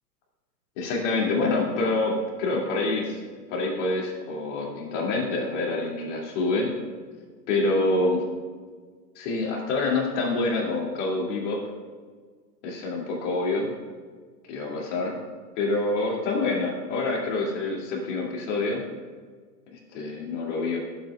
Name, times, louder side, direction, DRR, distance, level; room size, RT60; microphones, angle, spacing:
voice 1, 0.8-3.2 3.5-6.7 7.5-8.2 9.2-11.6 12.6-13.7 14.5-15.1 15.6-18.8 19.9-20.8, left 2 dB, 45° left, -1 dB, 2.7 m, -26 dB
14.5 x 7.6 x 2.4 m, 1.5 s
hypercardioid pair, 120°, 50 cm